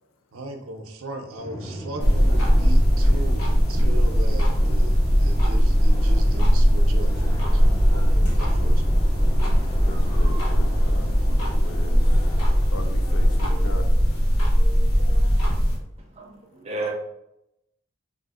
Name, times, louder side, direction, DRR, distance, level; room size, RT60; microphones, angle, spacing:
voice 1, 0.3-9.0, right 1 dB, 80° right, 5 dB, 0.5 m, -37 dB
Drum, 1.4-14.5, equal, 15° left, 0.5 m, -38 dB
sound 1, 2.0-15.8, equal, 85° left, 1.0 m, -19 dB
sound 2, 7.5-11.5, equal, 45° left, 1.1 m, -39 dB
voice 2, 9.8-12.3 12.7-13.9, left 2 dB, 65° left, 6 dB, 0.4 m, -39 dB
voice 3, 16.1-16.9, right 2 dB, 30° right, 1 dB, 0.5 m, -32 dB
3.5 x 2.5 x 2.4 m, 0.82 s
head